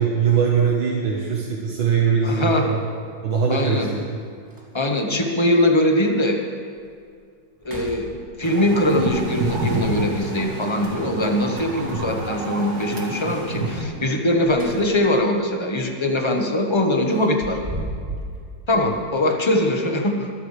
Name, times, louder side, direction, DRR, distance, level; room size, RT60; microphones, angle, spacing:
voice 1, 0.0-2.8 3.2-4.0 18.7-18.9, right 6 dB, 80° right, -3 dB, 2.2 m, -21 dB
voice 2, 2.2-2.7 3.5-3.9 4.7-6.4 7.6-17.6 18.7-20.3, left 1 dB, 20° left, 2 dB, 1.0 m, -22 dB
sound 1, 3.6-3.7 4.1-4.2 4.5-5.1 5.6-5.7 6.3-6.4 6.8-7.1 7.5-8.6 10.7-11.4 14.1-15.2 15.6-15.8 17.1-18.4, right 1 dB, 10° right, 2.5 m, -35 dB
sound 2, 8.4-13.8, right 2 dB, 55° right, 2.1 m, -28 dB
23.0 x 13.0 x 3.4 m, 2.2 s
omnidirectional pair, 2.1 m